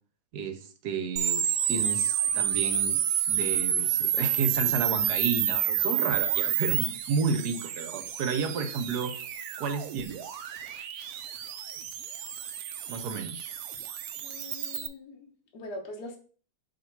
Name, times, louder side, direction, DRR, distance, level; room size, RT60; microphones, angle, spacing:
voice 1, 0.3-3.0 3.3-9.1 9.6-10.4 12.9-13.5, right 5 dB, 60° right, 8 dB, 1.1 m, -32 dB
sound 1, 1.2-14.9, right 9 dB, 90° right, 0.8 m, -29 dB
voice 2, 14.2-16.2, left 1 dB, 50° left, 1 dB, 1.6 m, -42 dB
7.6 x 2.9 x 4.6 m, 0.42 s
omnidirectional pair, 2.4 m